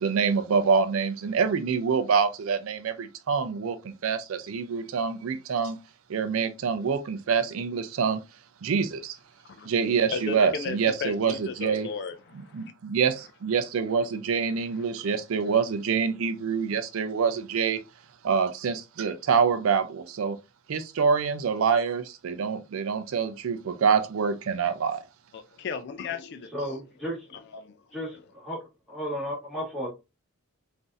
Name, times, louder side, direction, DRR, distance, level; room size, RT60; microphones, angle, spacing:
voice 1, 0.0-5.8 6.1-8.2 8.6-9.2 9.6-11.9 12.5-17.8 18.2-20.4 20.7-25.0, right 6 dB, 75° right, 0.4 m, -26 dB
voice 2, 10.1-10.8 11.0-12.1 25.3-26.5, left 6 dB, 50° left, 0.4 m, -34 dB
voice 3, 26.5-27.3 27.9-28.6 28.9-29.9, equal, ahead, 1.7 m, -33 dB
3.9 x 2.6 x 2.4 m
head